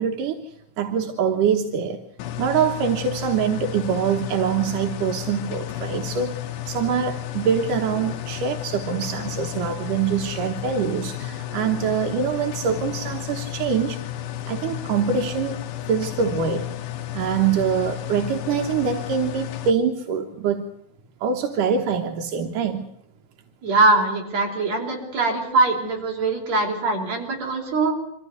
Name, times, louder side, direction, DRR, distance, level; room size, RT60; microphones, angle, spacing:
voice 1, 0.0-2.0 2.4-6.4 6.7-14.0 14.5-15.6 15.9-16.7 17.1-20.7 21.2-22.8, right 7 dB, 85° right, 4 dB, 2.9 m, -24 dB
sound 1, 2.2-19.7, left 12 dB, 80° left, 2.6 m, -32 dB
voice 2, 23.6-27.9, right 3 dB, 55° right, 1 dB, 6.2 m, -22 dB
24.5 x 15.0 x 9.6 m, 0.76 s
omnidirectional pair, 3.6 m